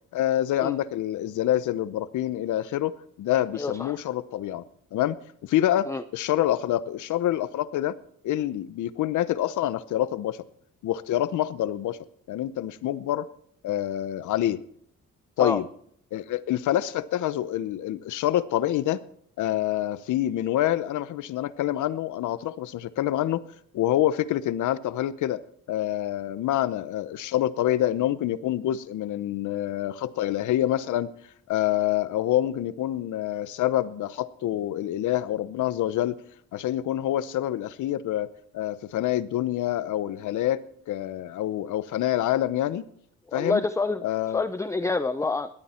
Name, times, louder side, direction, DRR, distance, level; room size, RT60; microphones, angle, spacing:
voice 1, 0.1-4.6 4.9-8.0 8.2-10.4 10.8-12.0 12.3-13.3 13.6-14.6 15.4-15.7 16.1-19.0 19.4-23.4 23.7-25.4 25.7-31.1 31.5-36.2 36.5-42.8 43.3-43.6 44.0-44.5, left 12 dB, 80° left, 16 dB, 0.9 m, -26 dB
voice 2, 3.5-4.0 5.9-6.0 15.4-15.6 43.3-44.0 44.3-45.5, left 3 dB, 10° left, 12 dB, 0.6 m, -27 dB
18.5 x 12.5 x 4.4 m, 0.65 s
cardioid pair, 90°, 30 cm